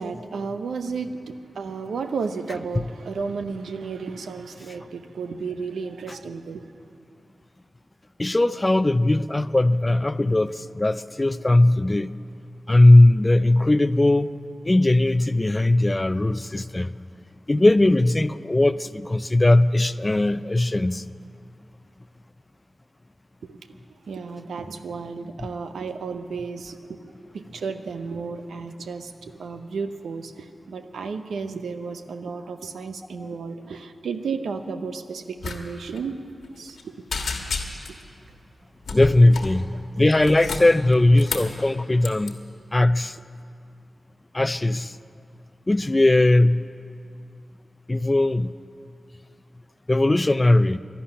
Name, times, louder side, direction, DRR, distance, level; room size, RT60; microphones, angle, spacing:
voice 1, 0.0-6.6 23.4-23.6 24.1-36.2 36.6-36.9, right 5 dB, 90° right, 0.7 m, -33 dB
voice 2, 8.2-12.1 12.7-14.3 14.6-16.9 17.5-21.0 33.2-33.3 38.9-39.7 40.0-42.4 42.7-43.2 44.3-44.9 45.7-46.6 47.9-48.5 49.9-50.8, left 2 dB, 25° left, 0.5 m, -19 dB
sound 1, 35.4-35.6 35.8-36.0 36.4-36.8 37.1-38.0 38.8-39.6 40.1-41.6 42.0-42.3, left 4 dB, 85° left, 1.4 m, -31 dB
12.0 x 11.5 x 9.9 m
cardioid pair, 45°, 0 cm